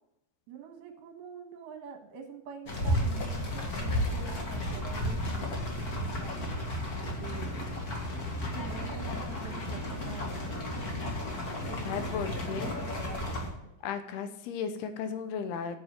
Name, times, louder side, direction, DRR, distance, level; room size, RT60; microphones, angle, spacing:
voice 1, 0.5-6.7 7.1-7.6 8.5-10.6 11.7-12.0 12.4-13.6, right 7 dB, 75° right, 5 dB, 3.5 m, -46 dB
sound 1, 2.7-13.5, left 1 dB, 40° left, 1.4 m, -33 dB
voice 2, 11.8-12.7 13.8-15.8, left 6 dB, 80° left, 9 dB, 3.0 m, -35 dB
8.9 x 6.8 x 7.4 m, 0.82 s
omnidirectional pair, 4.5 m